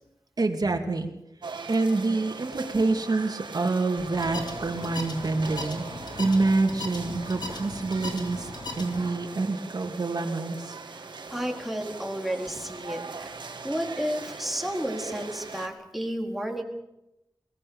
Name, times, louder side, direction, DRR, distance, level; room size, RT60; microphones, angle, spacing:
voice 1, 0.4-1.1 1.7-5.9 6.2-8.5 8.8-10.7, right 3 dB, 60° right, 3 dB, 2.7 m, -26 dB
sound 1, 1.4-15.7, right 4 dB, 90° right, 2.1 m, -40 dB
sound 2, 4.1-9.1, left 2 dB, 70° left, 3.5 m, -38 dB
voice 2, 10.9-16.6, equal, ahead, 1 dB, 4.2 m, -32 dB
22.5 x 18.5 x 7.2 m, 0.89 s
wide cardioid pair, 65°, 8 cm